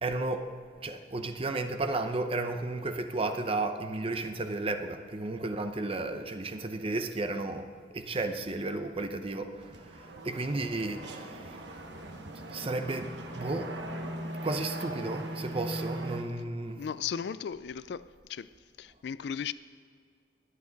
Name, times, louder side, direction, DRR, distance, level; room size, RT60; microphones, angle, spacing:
voice 1, 0.0-0.5 0.8-11.8 12.5-13.7 14.4-16.8, right 2 dB, 30° right, 0.7 m, -33 dB
sound 1, 9.5-16.2, right 1 dB, 75° right, 1.2 m, -39 dB
voice 2, 16.8-18.5 18.8-19.5, left 7 dB, 65° left, 0.4 m, -36 dB
21.0 x 8.5 x 4.0 m
head